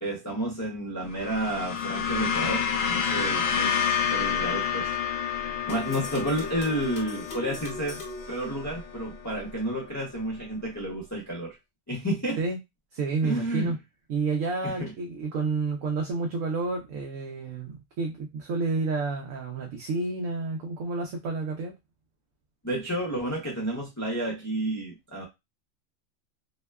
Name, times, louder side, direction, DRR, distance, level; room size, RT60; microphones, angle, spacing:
voice 1, 0.0-3.7 4.0-4.9 5.3-11.6 11.9-12.4 13.2-13.7 14.6-14.9 22.6-25.2, right 1 dB, 20° left, -3 dB, 0.5 m, -31 dB
sound 1, 1.1-9.6, left 7 dB, 75° left, 0.9 m, -29 dB
sound 2, 5.7-9.2, left 3 dB, 50° left, 0.7 m, -40 dB
voice 2, 12.9-13.8 14.1-21.7, right 3 dB, 75° right, 1 dB, 0.9 m, -30 dB
2.7 x 2.2 x 2.2 m, 0.21 s
omnidirectional pair, 1.4 m